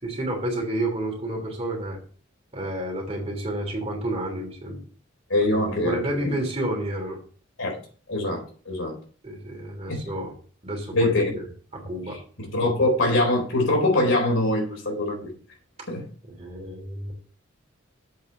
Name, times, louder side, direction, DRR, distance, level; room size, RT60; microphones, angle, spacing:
voice 1, 0.0-2.0 2.5-4.8 5.4-7.2 9.2-10.3 10.6-11.4 11.7-12.2 12.5-12.7 16.3-17.1, right 1 dB, 30° right, 3.1 m, -30 dB
voice 2, 5.3-6.4 7.6-7.8 8.1-8.9 9.9-10.0 10.9-11.3 12.5-15.3 15.9-16.1, left 2 dB, 75° left, 4.0 m, -23 dB
7.8 x 5.4 x 6.7 m
head